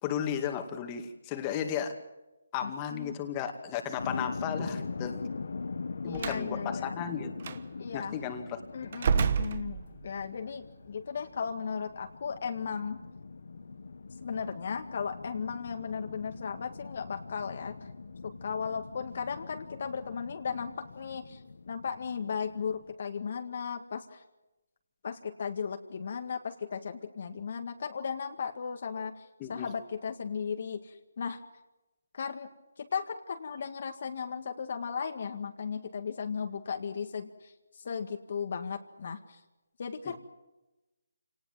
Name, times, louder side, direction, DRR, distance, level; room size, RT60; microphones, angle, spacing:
voice 1, 0.0-2.0 2.5-5.2 6.0-7.6 7.9-8.6 29.4-29.8 40.0-40.1, left 8 dB, 20° left, 5 dB, 2.3 m, -34 dB
voice 2, 2.6-3.2 6.0-7.0 7.8-8.2 8.7-9.8 10.0-13.0 14.2-17.8 18.2-21.4 21.7-24.2 25.0-29.2 29.5-31.4 32.1-32.5 32.8-37.5 37.8-39.4 39.8-40.2, left 6 dB, 50° left, 6 dB, 1.9 m, -36 dB
sound 1, 4.0-22.9, left 4 dB, 65° left, 1.6 m, -42 dB
Slam, 6.1-6.5 7.4-7.6 8.9-10.2, right 6 dB, 40° right, 1.2 m, -29 dB
28.0 x 19.0 x 7.6 m, 1.0 s
figure-of-eight pair, 160°, 0 cm